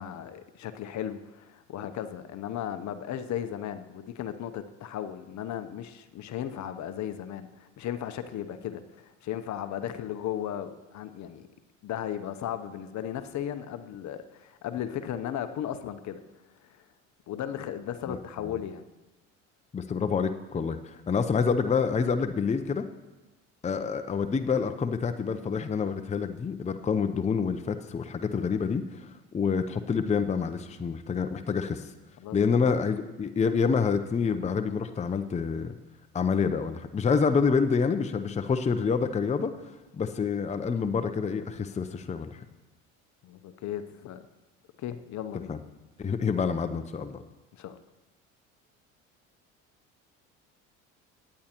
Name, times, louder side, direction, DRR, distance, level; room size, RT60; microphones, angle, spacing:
voice 1, 0.0-11.5 11.8-16.2 16.6-16.8 17.3-18.8 32.2-32.4 43.2-44.2 44.8-45.5 47.5-47.8, left 10 dB, 50° left, 10 dB, 0.8 m, -36 dB
voice 2, 19.7-22.8 23.6-31.9 32.3-35.8 36.1-39.5 39.9-42.4 45.5-45.6 46.0-47.2, left 5 dB, 20° left, 8 dB, 0.6 m, -27 dB
17.0 x 9.8 x 3.0 m, 1.1 s
hypercardioid pair, 70°, 37 cm